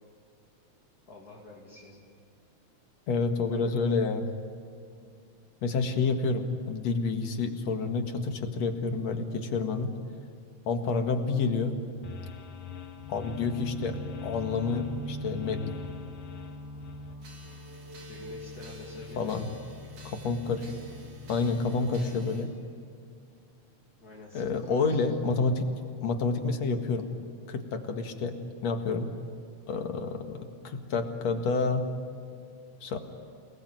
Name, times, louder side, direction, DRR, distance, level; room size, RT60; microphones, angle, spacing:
voice 1, 1.0-2.0 3.5-3.9 6.0-6.1 18.1-19.5 24.0-25.0, left 3 dB, 35° left, -1 dB, 2.8 m, -48 dB
voice 2, 3.1-4.2 5.6-9.9 10.7-11.8 13.1-15.6 19.2-19.5 20.0-20.7 21.3-22.5 24.3-25.7 26.0-27.1 27.5-28.4 28.6-29.1 29.7-31.8 32.8-33.0, left 4 dB, 65° left, 5 dB, 3.0 m, -29 dB
sound 1, 12.0-17.1, left 8 dB, 90° left, 2.9 m, -44 dB
sound 2, 13.0-21.5, equal, 10° left, 4.1 m, -42 dB
sound 3, 17.2-22.5, right 2 dB, 65° right, 4.5 m, -53 dB
29.0 x 20.0 x 9.3 m, 2.4 s
omnidirectional pair, 3.3 m